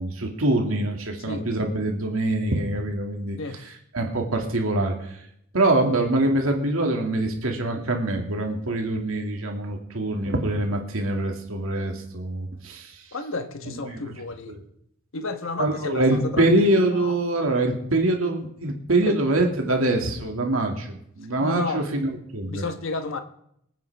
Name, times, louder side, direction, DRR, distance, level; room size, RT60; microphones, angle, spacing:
voice 1, 0.0-3.4 3.9-5.1 5.5-12.9 13.6-14.0 14.5-14.6 15.6-22.6, right 2 dB, 75° right, 2 dB, 2.3 m, -24 dB
voice 2, 13.1-14.5 15.1-16.5 16.9-17.2 19.0-19.2 21.4-21.8 22.5-23.2, left 3 dB, 70° left, 8 dB, 1.3 m, -31 dB
25.0 x 9.2 x 3.5 m, 0.73 s
head